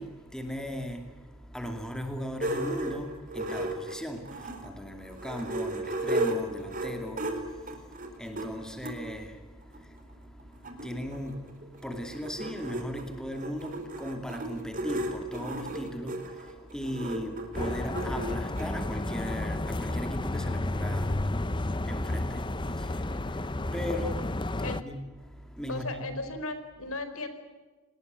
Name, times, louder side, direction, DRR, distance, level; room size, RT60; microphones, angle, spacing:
voice 1, 0.0-26.2, equal, 5° left, 2.5 m, -38 dB
sound 1, 2.4-4.7 5.1-9.0 9.7-9.8 10.1-10.2 10.4-18.7, right 1 dB, 35° right, 4.2 m, -34 dB
sound 2, 17.5-24.8, left 1 dB, 20° left, 0.8 m, -31 dB
voice 2, 25.7-27.3, left 2 dB, 75° left, 4.5 m, -36 dB
29.5 x 20.0 x 8.1 m
head